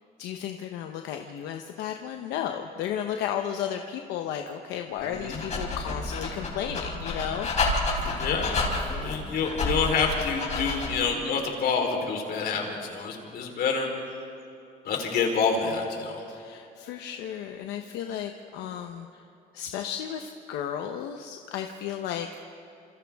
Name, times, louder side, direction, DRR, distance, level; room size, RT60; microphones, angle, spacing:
voice 1, 0.2-7.5 16.3-19.2 19.5-22.3, left 9 dB, 90° left, 4 dB, 1.0 m, -34 dB
voice 2, 5.0-5.4 8.0-13.9 14.8-16.2, left 5 dB, 65° left, 2 dB, 3.9 m, -28 dB
Dog, 5.0-11.1, left 2 dB, 45° left, 4.5 m, -30 dB
27.5 x 27.5 x 3.6 m, 2.6 s
cardioid pair, 110°, 17 cm